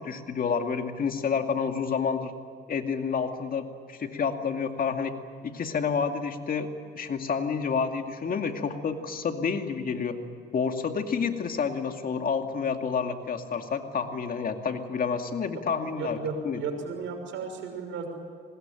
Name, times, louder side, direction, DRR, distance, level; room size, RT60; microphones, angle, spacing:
voice 1, 0.0-2.3 2.7-5.1 5.4-6.7 7.0-10.2 10.5-16.2 16.4-16.6, left 6 dB, 45° left, 5 dB, 2.3 m, -29 dB
voice 2, 15.9-18.1, right 4 dB, 70° right, 4 dB, 6.2 m, -34 dB
25.0 x 21.0 x 9.0 m, 2.2 s
supercardioid pair, 80°, 21 cm